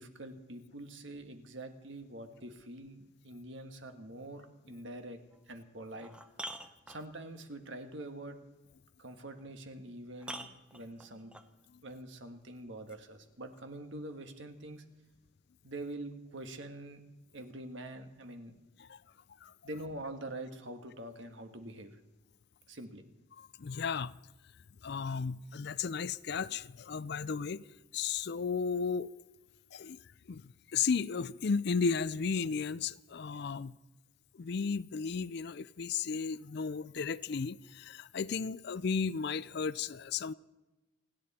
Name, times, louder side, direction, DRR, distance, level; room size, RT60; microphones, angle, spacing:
voice 1, 0.0-5.2 5.5-6.1 6.9-8.4 9.0-11.3 11.8-14.8 15.6-17.0 17.3-18.5 19.6-21.9 22.7-23.0, right 1 dB, 65° right, 1.7 m, -45 dB
sound 1, 5.3-5.4 5.9-7.4 9.4-9.5 10.2-11.5 12.9-13.0, right 1 dB, 5° right, 0.9 m, -45 dB
voice 2, 23.4-24.1 24.8-27.6 27.9-29.1 29.7-30.0 30.3-33.7 34.4-40.3, left 5 dB, 55° left, 0.4 m, -34 dB
30.0 x 10.5 x 4.3 m
head